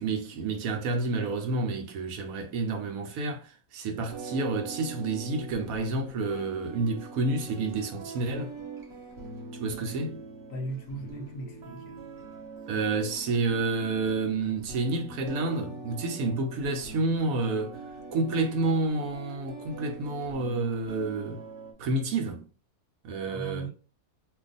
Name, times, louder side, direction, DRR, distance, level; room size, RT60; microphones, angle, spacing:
voice 1, 0.0-8.5 9.6-10.2 12.7-17.8 18.1-21.4 21.8-22.5 23.0-23.7, right 3 dB, 70° right, 1.0 m, -29 dB
sound 1, 4.1-21.7, right 3 dB, 50° right, 1.0 m, -43 dB
voice 2, 10.5-12.1 23.2-23.7, right 2 dB, 70° left, 1.0 m, -37 dB
2.5 x 2.3 x 3.8 m
omnidirectional pair, 1.6 m